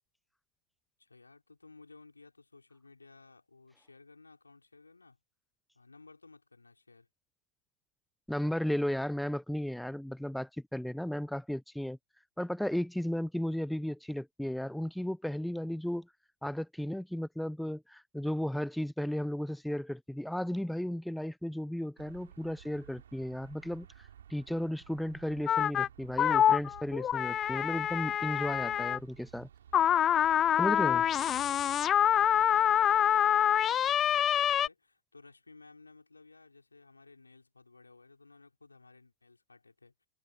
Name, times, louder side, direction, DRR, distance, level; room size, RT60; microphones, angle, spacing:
voice 1, 1.0-5.2 5.7-7.1 30.8-40.1, left 3 dB, 80° left, 5.5 m, -57 dB
voice 2, 8.3-12.0 12.4-16.1 16.4-29.5 30.6-31.0, left 1 dB, ahead, 1.0 m, -34 dB
sound 1, 22.0-33.0, right 9 dB, 65° right, 5.4 m, -55 dB
sound 2, 25.5-25.9 26.2-29.0 29.7-34.7, left 10 dB, 25° left, 0.5 m, -26 dB
figure-of-eight pair, 90°, 0 cm